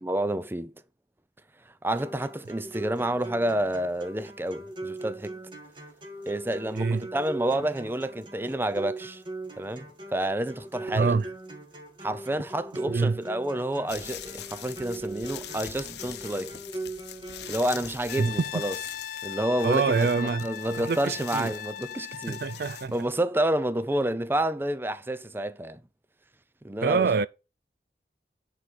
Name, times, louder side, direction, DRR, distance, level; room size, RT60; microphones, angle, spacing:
voice 1, 0.0-0.7 1.8-5.4 6.3-9.2 9.6-11.2 12.0-16.6 17.5-18.8 19.2-22.4 22.9-25.8 26.6-27.1, right 1 dB, 10° right, 0.6 m, -29 dB
sound 1, 2.0-18.0, right 2 dB, 30° right, 2.0 m, -40 dB
voice 2, 6.8-7.1 10.9-11.3 12.9-13.2 18.2-18.3 19.6-21.5 22.3-22.9 26.8-27.3, right 4 dB, 55° right, 0.4 m, -26 dB
sound 2, 13.9-23.0, left 11 dB, 70° left, 0.8 m, -43 dB
Brass instrument, 18.1-22.9, left 9 dB, 50° left, 0.3 m, -38 dB
9.9 x 4.4 x 4.9 m
head